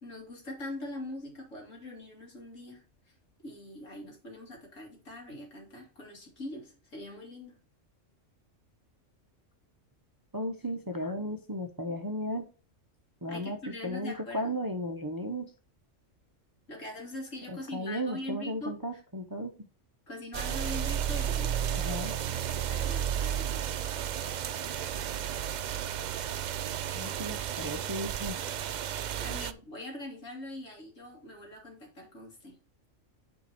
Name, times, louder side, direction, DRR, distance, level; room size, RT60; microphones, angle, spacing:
voice 1, 0.0-3.1 3.4-7.5 13.3-14.5 16.7-19.0 20.1-23.8 29.2-32.6, left 1 dB, 80° left, 0 dB, 2.8 m, -43 dB
voice 2, 10.3-12.5 13.2-13.6 13.8-15.5 17.5-19.5 21.7-22.1 26.9-28.4, equal, 25° right, 5 dB, 0.6 m, -35 dB
sound 1, 20.3-29.5, right 9 dB, 75° right, 0.4 m, -33 dB
8.7 x 4.6 x 4.2 m, 0.37 s
omnidirectional pair, 1.3 m